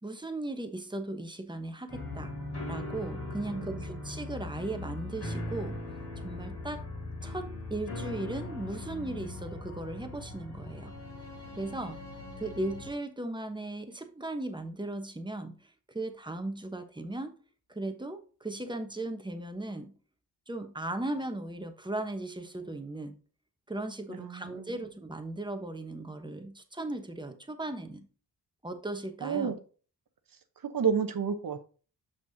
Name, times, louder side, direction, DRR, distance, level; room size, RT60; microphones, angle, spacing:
voice 1, 0.0-2.3 2.7-5.8 6.2-6.8 7.2-11.0 11.5-12.0 12.4-17.3 17.7-19.9 20.5-23.2 23.7-28.1 28.6-29.5, right 2 dB, 10° right, 1.0 m, -37 dB
sound 1, 1.9-12.9, left 2 dB, 70° left, 2.9 m, -40 dB
voice 2, 3.5-4.0 24.1-24.6 29.2-29.5 30.6-31.6, right 7 dB, 55° right, 0.9 m, -31 dB
6.9 x 6.1 x 2.7 m
cardioid pair, 85°, 41 cm